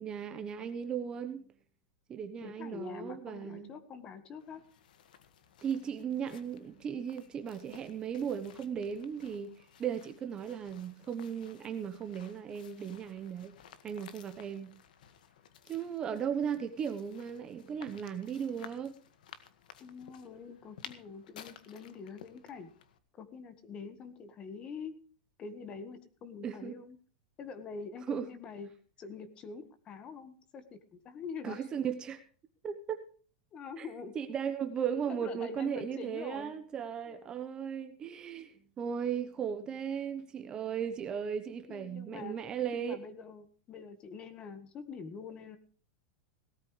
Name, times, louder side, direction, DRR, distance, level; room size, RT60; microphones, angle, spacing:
voice 1, 0.0-1.4 2.1-3.7 5.6-13.6 13.8-14.7 15.7-19.0 26.4-26.7 28.1-28.3 31.4-32.2 32.6-33.0 33.8-33.9 34.1-43.0, right 8 dB, 20° right, 9 dB, 0.9 m, -36 dB
voice 2, 2.4-4.6 16.1-16.2 19.8-22.7 23.1-25.0 25.4-27.0 27.4-28.7 29.0-31.7 33.5-34.2 35.1-36.5 37.1-37.7 41.7-42.4 42.7-45.6, left 5 dB, 20° left, 11 dB, 1.4 m, -45 dB
sound 1, 4.4-23.0, left 9 dB, 85° left, 1.7 m, -56 dB
18.0 x 13.0 x 3.2 m, 0.42 s
supercardioid pair, 170°, 4 cm